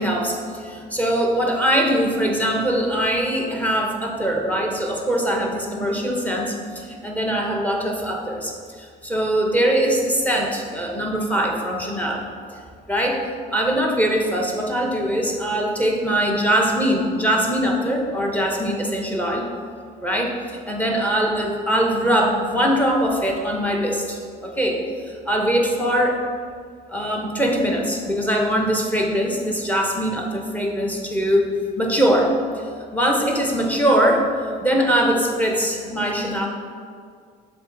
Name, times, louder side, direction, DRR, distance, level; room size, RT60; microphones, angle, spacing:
voice 1, 0.0-8.5 8.8-12.2 12.9-13.2 13.5-19.4 20.0-26.2 26.9-32.6 32.9-36.5, equal, 10° left, 0 dB, 0.8 m, -22 dB
7.0 x 3.5 x 3.9 m, 2.2 s
cardioid pair, 110°, 17 cm